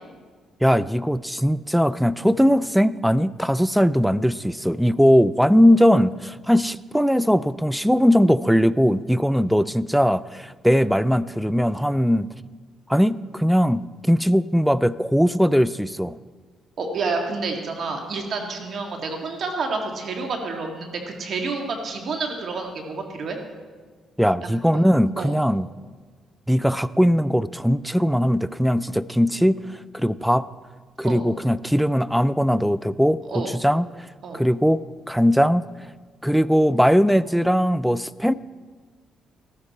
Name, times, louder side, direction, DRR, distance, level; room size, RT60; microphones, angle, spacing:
voice 1, 0.6-12.3 12.9-16.2 24.2-25.7 26.5-30.5 31.0-34.1 34.3-35.7 36.2-38.3, equal, ahead, 18 dB, 0.4 m, -20 dB
voice 2, 16.8-23.4 24.4-24.8 25.2-25.3 31.0-31.2 33.3-33.5 34.2-34.4, right 4 dB, 60° right, 3 dB, 1.9 m, -29 dB
14.0 x 13.0 x 4.3 m, 1.5 s
cardioid pair, 90°, 0 cm